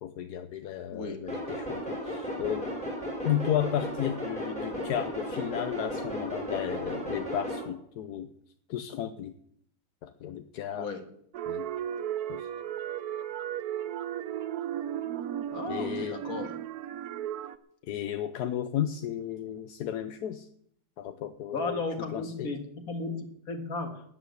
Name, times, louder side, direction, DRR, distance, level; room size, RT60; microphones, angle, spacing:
voice 1, 0.0-2.7 3.2-8.3 8.7-9.3 10.0-10.9 11.5-11.7 12.3-12.5 15.7-16.2 17.9-20.5 21.0-22.5, left 10 dB, 80° left, 9 dB, 1.3 m, -33 dB
sound 1, 1.3-7.6, equal, 5° left, 6.5 m, -35 dB
sound 2, 11.3-17.6, right 10 dB, 70° right, 1.3 m, -35 dB
voice 2, 15.5-16.5 21.5-24.0, left 3 dB, 60° left, 6 dB, 2.3 m, -35 dB
13.0 x 8.0 x 9.5 m, 0.69 s
omnidirectional pair, 1.7 m